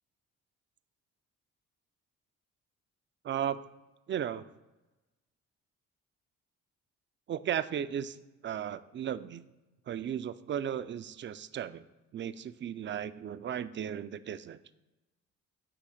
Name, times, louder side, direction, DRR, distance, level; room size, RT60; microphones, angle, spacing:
voice 1, 3.2-3.6 4.1-4.5 7.3-8.2 8.4-9.5 9.9-11.8 12.1-14.6, right 9 dB, 40° right, 14 dB, 0.4 m, -35 dB
8.5 x 3.0 x 6.4 m, 1.1 s
cardioid pair, 90°, 30 cm